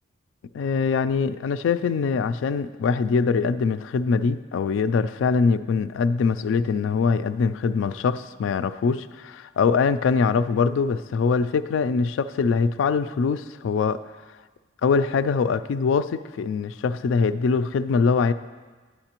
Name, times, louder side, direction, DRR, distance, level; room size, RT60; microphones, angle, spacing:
voice 1, 0.5-14.0 14.8-18.3, left 5 dB, 70° left, 13 dB, 0.3 m, -23 dB
9.8 x 8.8 x 2.9 m, 1.4 s
head